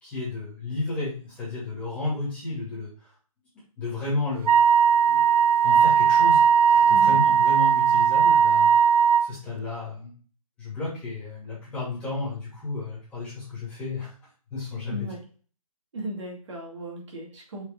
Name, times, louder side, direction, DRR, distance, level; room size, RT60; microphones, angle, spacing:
voice 1, 0.0-3.1 3.8-4.5 5.1-5.2 5.6-6.4 6.7-8.9 9.2-10.1 10.6-14.1 14.5-15.1, left 3 dB, 5° left, -8 dB, 2.4 m, -32 dB
Wind instrument woodwind instrument, 4.5-9.3, right 7 dB, 85° right, 0.5 m, -18 dB
voice 2, 14.9-15.2 15.9-17.6, right 1 dB, 50° right, -2 dB, 2.6 m, -36 dB
6.7 x 4.5 x 3.7 m, 0.42 s
hypercardioid pair, 170°, 19 cm